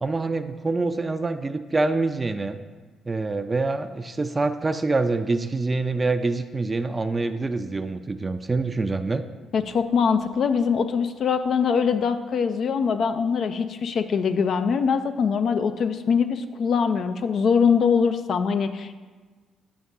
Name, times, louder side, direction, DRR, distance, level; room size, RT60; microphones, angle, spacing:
voice 1, 0.0-2.6 3.1-9.2, right 3 dB, 25° right, 9 dB, 0.4 m, -25 dB
voice 2, 9.5-18.9, left 6 dB, 55° left, 9 dB, 0.3 m, -23 dB
9.3 x 5.1 x 2.5 m, 1.4 s
hypercardioid pair, 45°, 0 cm